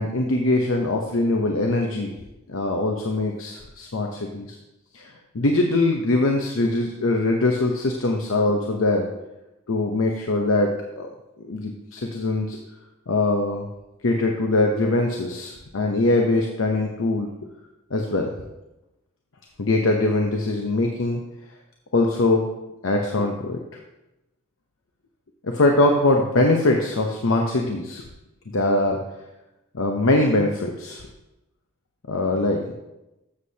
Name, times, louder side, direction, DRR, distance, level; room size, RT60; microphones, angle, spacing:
voice 1, 0.0-2.1 2.5-4.5 4.9-5.1 5.3-9.1 9.7-11.1 11.5-12.6 13.1-13.6 14.0-17.3 17.9-18.3 19.6-21.2 21.9-22.4 22.8-23.6 25.4-28.0 28.5-29.0 29.7-31.0 32.1-32.7, left 2 dB, 80° left, 2 dB, 0.8 m, -22 dB
13.0 x 7.4 x 2.8 m, 0.97 s
head